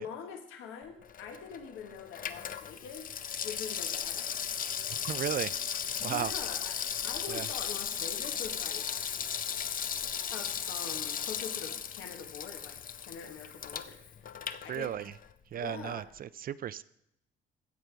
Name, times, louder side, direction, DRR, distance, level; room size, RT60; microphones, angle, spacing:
voice 1, 0.0-3.1 3.4-4.4 6.0-6.7 7.0-9.1 10.3-15.0 15.6-16.0, left 6 dB, 90° left, 4 dB, 1.3 m, -44 dB
Water tap faucet / Sink (filling or washing), 1.0-15.3 15.6-15.7, left 8 dB, 45° left, 0.6 m, -36 dB
voice 2, 4.9-5.5 6.0-6.3 7.3-7.5 14.7-15.1 15.5-16.8, right 10 dB, 45° right, 17 dB, 0.4 m, -35 dB
15.5 x 5.2 x 4.5 m, 0.77 s
cardioid pair, 90°, 20 cm